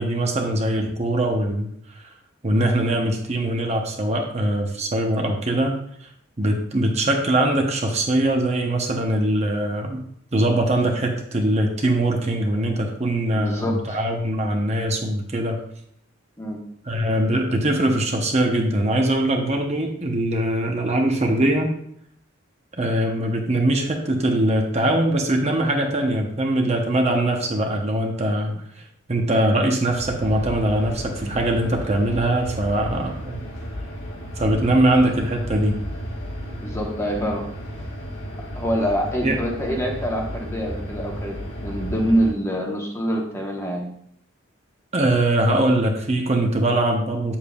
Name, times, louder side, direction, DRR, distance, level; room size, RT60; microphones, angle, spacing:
voice 1, 0.0-1.7 1.9-2.1 2.4-6.1 6.4-10.0 10.3-15.6 16.9-21.7 22.8-28.5 29.1-33.4 34.4-35.8 39.2-39.4 44.9-47.4, right 1 dB, 30° right, 2 dB, 0.8 m, -22 dB
voice 2, 13.3-14.0 16.4-16.6 36.6-37.5 38.5-43.9, equal, 15° left, 0 dB, 1.2 m, -25 dB
sound 1, 29.9-42.3, equal, 60° left, 1.9 m, -33 dB
8.5 x 7.3 x 2.4 m, 0.70 s
head